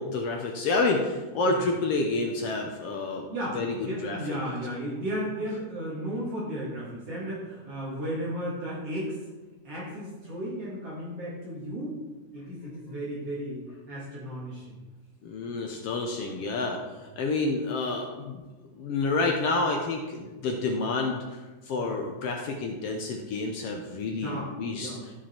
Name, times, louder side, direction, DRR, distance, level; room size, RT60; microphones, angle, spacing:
voice 1, 0.0-3.3 3.5-4.4 15.2-18.4 18.7-24.9, left 3 dB, 70° left, 2 dB, 1.6 m, -29 dB
voice 2, 3.3-9.2 9.6-11.9 12.3-14.8 21.8-21.9 24.1-25.1, equal, 55° right, -7 dB, 2.9 m, -34 dB
13.5 x 5.0 x 4.4 m, 1.2 s
omnidirectional pair, 3.4 m